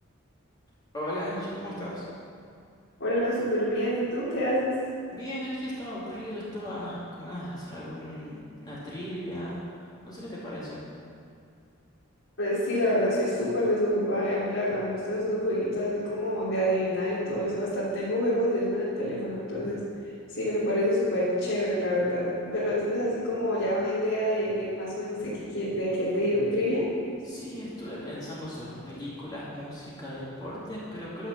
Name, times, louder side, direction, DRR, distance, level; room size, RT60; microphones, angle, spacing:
voice 1, 0.9-2.0 5.1-9.6 10.0-10.8 27.2-31.3, equal, 20° left, -9 dB, 2.5 m, -37 dB
voice 2, 3.0-4.8 12.4-19.8 20.3-26.9, equal, 65° left, -11 dB, 3.2 m, -27 dB
12.0 x 6.5 x 7.4 m, 2.3 s
head